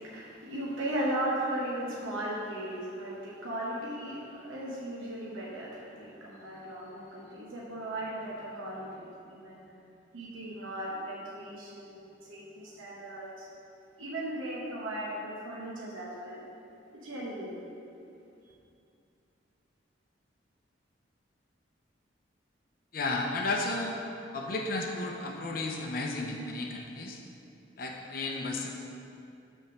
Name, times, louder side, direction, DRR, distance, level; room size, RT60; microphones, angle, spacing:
voice 1, 0.0-9.6 10.1-13.5 14.0-16.4 17.0-17.5, right 1 dB, 90° right, -6 dB, 1.0 m, -37 dB
voice 2, 22.9-24.0 24.3-27.2 27.8-28.7, left 2 dB, 45° left, 0 dB, 0.6 m, -33 dB
5.9 x 4.4 x 5.9 m, 2.6 s
head